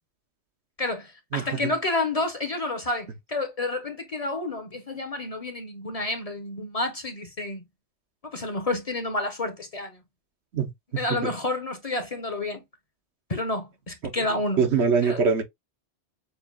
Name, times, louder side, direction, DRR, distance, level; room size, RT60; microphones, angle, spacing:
voice 1, 0.8-7.6 8.2-10.0 11.0-12.6 13.3-14.6 15.0-15.2, left 2 dB, 35° left, 0.9 m, -30 dB
voice 2, 1.3-1.7 10.5-11.3 14.6-15.4, right 5 dB, 70° right, 1.2 m, -24 dB
7.0 x 2.4 x 2.2 m
omnidirectional pair, 1.2 m